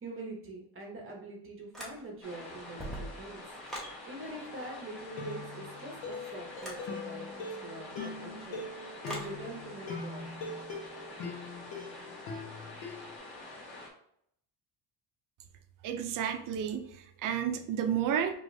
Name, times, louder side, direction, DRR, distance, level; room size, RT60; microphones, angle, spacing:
voice 1, 0.0-3.4 4.1-7.2 7.6-10.3, right 2 dB, 30° right, 0 dB, 0.8 m, -44 dB
sound 1, 1.7-2.3 2.7-4.0 6.6-6.9 9.0-9.4, equal, ahead, 0.8 m, -42 dB
sound 2, 2.2-13.9, left 2 dB, 55° left, 1.3 m, -47 dB
sound 3, 4.3-4.5 5.2-13.2, left 3 dB, 90° left, 1.2 m, -42 dB
voice 2, 15.8-18.3, right 9 dB, 45° right, 7 dB, 0.5 m, -31 dB
4.8 x 3.0 x 2.6 m, 0.69 s
cardioid pair, 170°, 45 cm